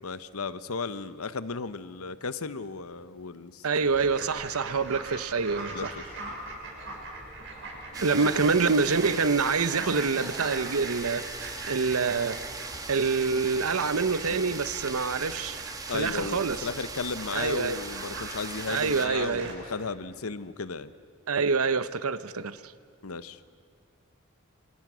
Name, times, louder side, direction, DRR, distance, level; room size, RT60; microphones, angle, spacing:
voice 1, 0.0-3.6 5.7-6.1 8.0-8.2 15.9-20.9 23.0-23.4, left 4 dB, 85° left, 1.0 m, -35 dB
voice 2, 3.6-5.9 8.0-11.2 11.7-12.4 12.9-15.6 15.9-16.7 17.3-17.8 18.7-19.5 21.3-22.7, right 4 dB, 90° right, 0.9 m, -26 dB
Fowl, 3.8-19.5, right 2 dB, 60° right, 6.5 m, -41 dB
sound 1, 7.9-19.1, right 4 dB, 15° right, 1.2 m, -40 dB
30.0 x 26.0 x 6.3 m
head